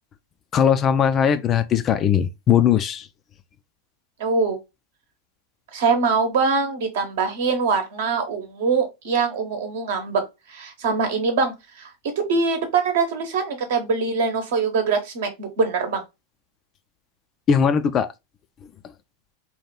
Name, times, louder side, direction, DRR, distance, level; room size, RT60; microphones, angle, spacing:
voice 1, 0.5-3.1 17.5-18.1, left 8 dB, 30° left, 0.3 m, -19 dB
voice 2, 4.2-4.6 5.7-11.9 12.2-16.0, right 4 dB, 55° right, 0.9 m, -23 dB
2.9 x 2.3 x 3.6 m
figure-of-eight pair, 90°, 0 cm